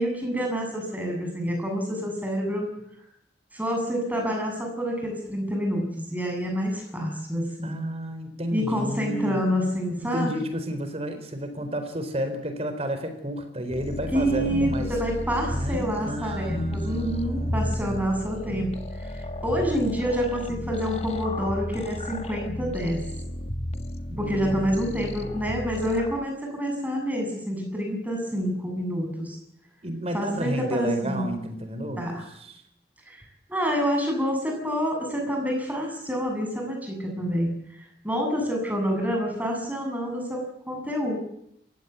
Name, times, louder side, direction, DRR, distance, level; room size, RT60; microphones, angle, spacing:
voice 1, 0.0-2.7 3.5-7.7 8.5-10.3 14.1-23.0 24.2-29.4 30.1-31.2 32.0-32.2 33.1-33.2 33.5-41.2, equal, 10° right, 2 dB, 7.5 m, -28 dB
voice 2, 7.6-9.4 10.0-14.9 15.5-18.1 24.1-25.5 29.8-32.0 32.3-32.6, equal, 35° right, 8 dB, 4.2 m, -32 dB
sound 1, 13.7-26.2, left 1 dB, 35° left, 1.8 m, -33 dB
27.5 x 16.0 x 8.3 m, 0.76 s
head